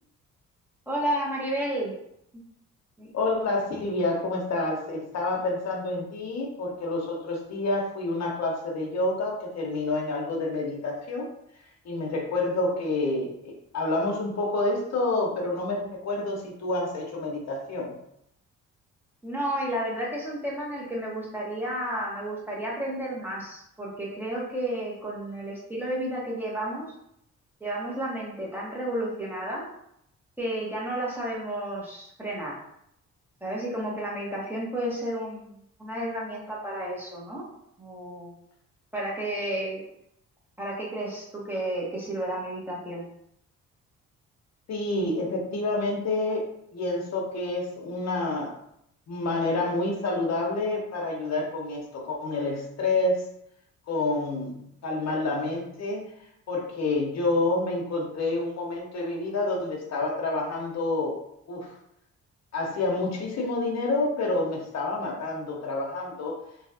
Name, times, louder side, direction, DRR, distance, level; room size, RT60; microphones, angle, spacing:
voice 1, 0.9-1.9 2.3-2.4 3.0-3.1 19.2-26.9 27.6-29.7 30.4-32.6 33.4-37.5 37.8-38.3 38.9-39.8 40.6-43.0, right 1 dB, 5° right, -5 dB, 1.2 m, -32 dB
voice 2, 3.1-11.3 11.8-17.9 44.7-48.6 49.1-53.3 53.9-56.1 56.5-61.2 61.5-61.7 62.5-66.4, left 2 dB, 60° left, -1 dB, 0.9 m, -28 dB
3.1 x 2.7 x 2.7 m, 0.75 s
cardioid pair, 90°, 30 cm